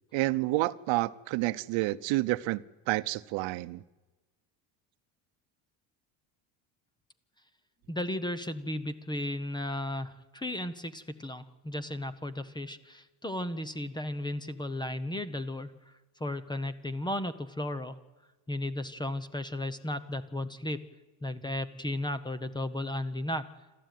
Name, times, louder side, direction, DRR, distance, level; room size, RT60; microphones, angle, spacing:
voice 1, 0.1-2.6 2.9-3.8, right 19 dB, 65° right, 0.9 m, -29 dB
voice 2, 7.9-15.7 16.2-18.0 18.5-20.9 21.2-23.4, left 1 dB, 10° left, 0.7 m, -35 dB
28.0 x 13.5 x 9.3 m
cardioid pair, 160°, 49 cm